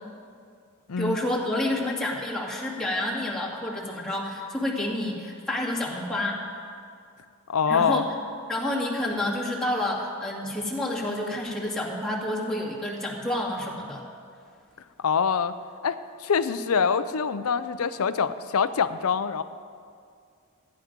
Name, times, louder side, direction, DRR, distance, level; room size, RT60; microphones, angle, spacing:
voice 1, 1.0-6.4 7.7-8.1 8.5-14.0, left 1 dB, 5° left, -6 dB, 2.1 m, -29 dB
voice 2, 7.5-8.0 15.0-15.5 15.8-19.4, left 6 dB, 75° left, 13 dB, 0.5 m, -25 dB
14.5 x 10.5 x 5.2 m, 2.3 s
head